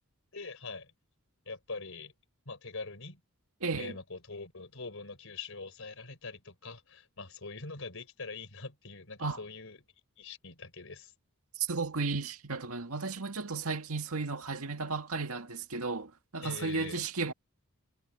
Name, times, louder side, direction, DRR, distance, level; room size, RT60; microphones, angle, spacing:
voice 1, 0.3-0.9 1.5-2.1 2.4-3.2 3.8-9.8 10.2-11.1 16.4-17.0, left 3 dB, 65° left, 4.6 m, -43 dB
voice 2, 3.6-4.0 9.2-9.4 11.6-17.3, right 4 dB, 75° right, 2.0 m, -34 dB
head